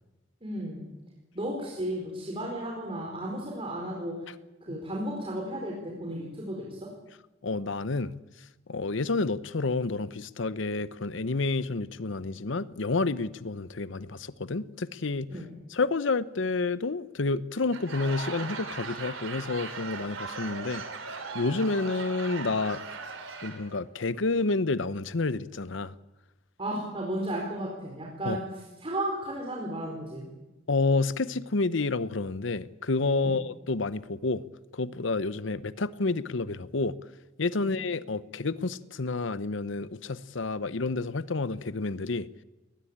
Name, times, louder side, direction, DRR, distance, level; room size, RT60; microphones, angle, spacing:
voice 1, 0.4-0.9 1.3-4.3 4.7-6.9 15.3-15.5 26.6-28.4 28.8-30.3 33.2-33.4 37.6-37.7, right 1 dB, 30° right, 4.4 m, -34 dB
voice 2, 7.4-8.1 8.7-15.3 15.7-20.8 21.3-22.8 23.4-25.9 28.2-28.4 30.7-34.4 34.7-36.9 37.4-42.3, left 3 dB, 70° left, 0.8 m, -29 dB
Laughter / Crowd, 17.5-23.8, right 4 dB, 80° right, 3.2 m, -39 dB
21.0 x 20.5 x 8.8 m
head